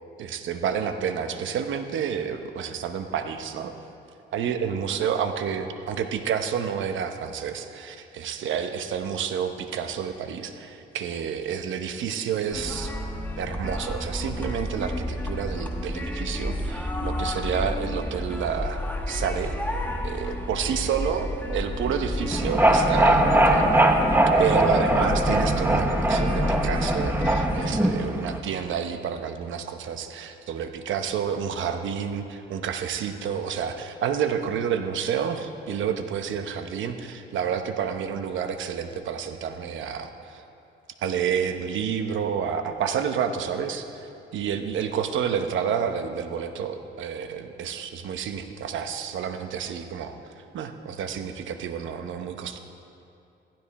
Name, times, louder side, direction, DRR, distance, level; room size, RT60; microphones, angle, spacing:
voice 1, 0.2-3.7 4.3-12.9 13.4-19.6 20.0-23.9 24.4-40.4 41.0-50.2 50.5-52.6, right 7 dB, 75° right, 7 dB, 1.0 m, -29 dB
sound 1, 12.5-27.7, left 1 dB, 10° left, 1.3 m, -31 dB
sound 2, 22.3-28.4, right 1 dB, 10° right, 1.1 m, -21 dB
15.0 x 12.0 x 4.2 m, 2.6 s
cardioid pair, 90°, 20 cm